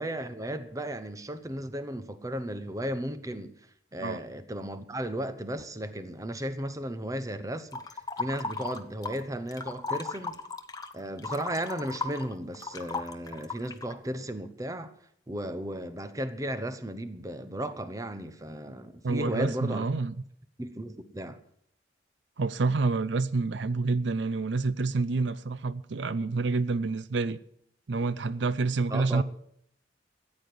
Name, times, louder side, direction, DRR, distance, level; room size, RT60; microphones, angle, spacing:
voice 1, 0.0-3.5 3.9-10.4 10.9-14.9 15.3-19.9 20.6-21.4 28.9-29.2, right 1 dB, 20° right, 0.9 m, -35 dB
sound 1, 7.7-9.2 9.5-13.9, left 3 dB, 20° left, 0.9 m, -36 dB
voice 2, 19.0-20.2 22.4-27.4 27.9-29.2, right 3 dB, 75° right, 0.5 m, -28 dB
14.0 x 8.7 x 7.8 m
head